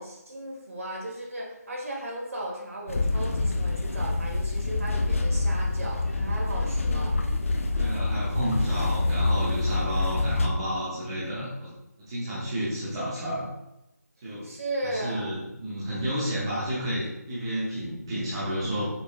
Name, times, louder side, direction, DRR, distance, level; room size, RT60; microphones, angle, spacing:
voice 1, 0.0-7.2 14.4-15.3, right 1 dB, 55° right, -3 dB, 1.2 m, -36 dB
sound 1, 2.9-10.5, left 2 dB, 50° left, 0.4 m, -26 dB
voice 2, 7.7-11.7 12.1-13.5 14.2-14.5 14.8-18.9, equal, 15° right, -10 dB, 0.7 m, -31 dB
5.3 x 2.7 x 2.4 m, 0.89 s
figure-of-eight pair, 170°, 9 cm